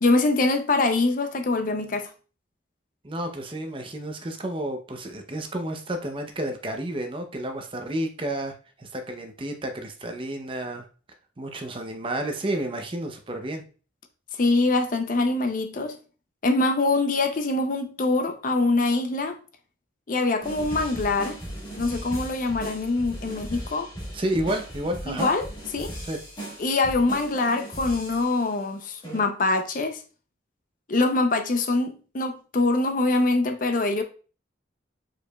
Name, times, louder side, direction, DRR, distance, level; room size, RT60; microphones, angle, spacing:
voice 1, 0.0-2.1 14.4-16.0 16.4-19.4 20.1-21.4 21.8-23.9 25.1-25.4 25.7-25.9 26.6-30.0 30.9-34.0, left 2 dB, 45° left, 0.5 m, -24 dB
voice 2, 3.0-10.9 11.4-13.6 24.1-25.3 26.1-26.2, right 1 dB, 30° right, 0.6 m, -31 dB
sound 1, 20.4-28.6 29.0-29.2, right 1 dB, 25° left, 1.7 m, -37 dB
4.9 x 4.7 x 2.3 m
head